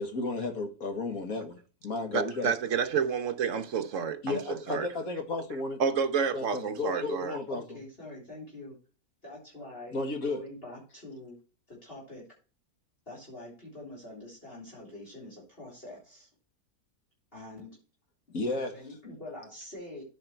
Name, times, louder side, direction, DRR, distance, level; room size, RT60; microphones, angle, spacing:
voice 1, 0.0-1.6 1.8-2.5 4.2-5.8 6.3-7.8 9.9-10.4 18.3-18.7, left 3 dB, 65° left, 2.4 m, -33 dB
voice 2, 2.1-4.9 5.8-7.4, right 6 dB, 60° right, 1.3 m, -29 dB
voice 3, 7.5-8.8 9.2-10.0 10.2-11.4 11.7-12.2 13.1-16.3 17.3-17.8 18.5-20.0, left 1 dB, 35° left, 3.9 m, -45 dB
13.0 x 5.3 x 4.5 m
omnidirectional pair, 1.6 m